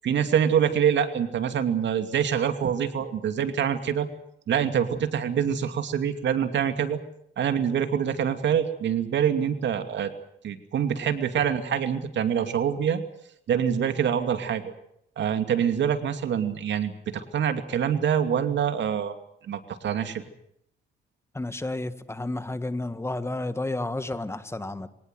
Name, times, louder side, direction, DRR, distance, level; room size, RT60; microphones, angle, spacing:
voice 1, 0.0-4.1 4.5-7.0 7.4-10.1 10.4-13.0 13.5-14.6 15.2-19.1 19.4-20.2, right 8 dB, 65° right, 8 dB, 2.7 m, -25 dB
voice 2, 21.3-24.9, left 2 dB, 15° left, 12 dB, 1.7 m, -31 dB
23.5 x 18.5 x 7.9 m, 0.72 s
cardioid pair, 90°, 20 cm